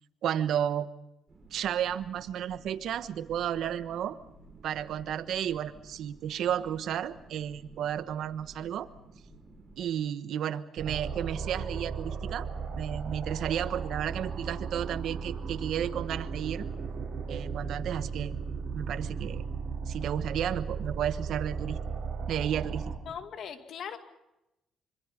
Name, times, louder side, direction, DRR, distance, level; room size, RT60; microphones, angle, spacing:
voice 1, 0.2-0.9 1.5-4.2 4.6-8.9 9.8-12.5 12.7-16.7 17.3-18.4 18.7-19.5 19.9-21.8 22.3-22.8, right 10 dB, 75° right, 11 dB, 1.2 m, -32 dB
sound 1, 1.3-9.9, right 2 dB, 25° right, 5.4 m, -54 dB
sound 2, 10.8-23.0, right 5 dB, 55° right, 5.6 m, -36 dB
voice 2, 23.1-24.0, left 7 dB, 65° left, 7 dB, 2.1 m, -39 dB
25.5 x 25.5 x 5.3 m, 0.90 s
cardioid pair, 90°, 0 cm